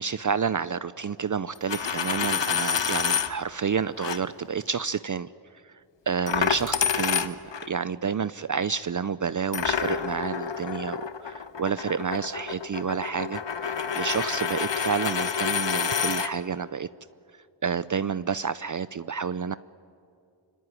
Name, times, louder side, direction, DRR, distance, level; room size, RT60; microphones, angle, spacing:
voice 1, 0.0-5.3 5.6-5.7 6.1-16.9 17.6-19.6, right 6 dB, 40° right, 15 dB, 0.6 m, -29 dB
Coin (dropping), 1.6-3.3 4.0-4.2 6.3-7.7 9.5-16.3, left 7 dB, 65° left, 1.2 m, -28 dB
24.5 x 24.5 x 9.6 m, 2.4 s
cardioid pair, 40°, 46 cm